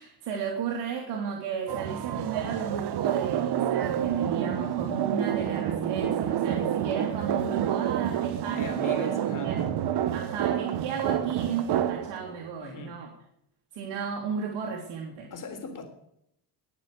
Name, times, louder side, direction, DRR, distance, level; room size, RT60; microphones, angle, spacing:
voice 1, 0.0-9.1 9.4-9.6 10.1-13.1 13.7-15.3, right 6 dB, 90° right, -1 dB, 2.8 m, -34 dB
sound 1, 1.7-12.5, right 10 dB, 70° right, 1.2 m, -28 dB
sound 2, 2.5-2.7 3.3-3.5 4.1-4.3 4.9-5.1 5.7-5.9 6.5-6.7 7.4-7.6 8.3-8.6 9.5-10.1 10.9-11.6, left 1 dB, 15° right, 4.9 m, -48 dB
voice 2, 8.5-9.6 12.6-13.0 15.3-15.8, left 3 dB, 50° left, 5 dB, 3.8 m, -39 dB
20.5 x 6.8 x 6.5 m, 0.75 s
cardioid pair, 110°, 42 cm